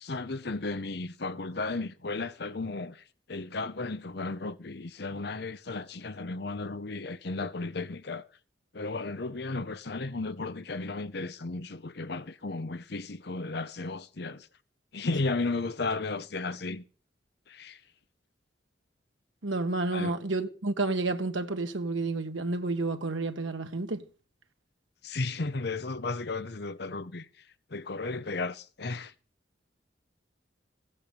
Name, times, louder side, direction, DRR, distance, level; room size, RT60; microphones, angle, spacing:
voice 1, 0.0-3.0 3.3-8.3 8.7-14.5 14.9-16.8 17.5-17.8 19.9-20.1 25.0-27.3 27.7-29.1, left 3 dB, 60° left, 0.8 m, -34 dB
voice 2, 19.4-24.0, right 3 dB, 90° right, 1.5 m, -30 dB
16.0 x 8.5 x 7.0 m
head